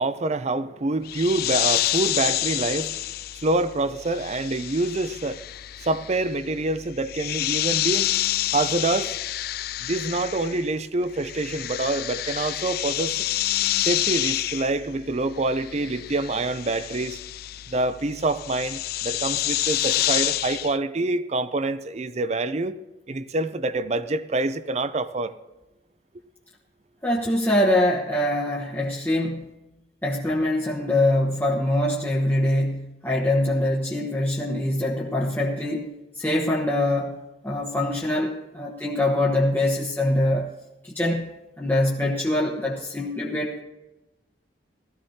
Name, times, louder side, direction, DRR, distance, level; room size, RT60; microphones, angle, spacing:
voice 1, 0.0-3.0 3.3-5.4 5.8-8.1 8.5-9.1 9.8-13.3 13.8-17.2 17.7-22.8 23.1-25.3, right 2 dB, 40° right, 0.6 m, -26 dB
sound 1, 1.1-10.8 11.0-20.8, left 14 dB, 55° left, 0.3 m, -28 dB
voice 2, 27.0-29.4 30.0-35.9 36.1-37.2 37.4-40.5 40.8-41.3 41.6-43.6, left 1 dB, 10° left, 1.0 m, -24 dB
17.5 x 14.0 x 2.8 m
head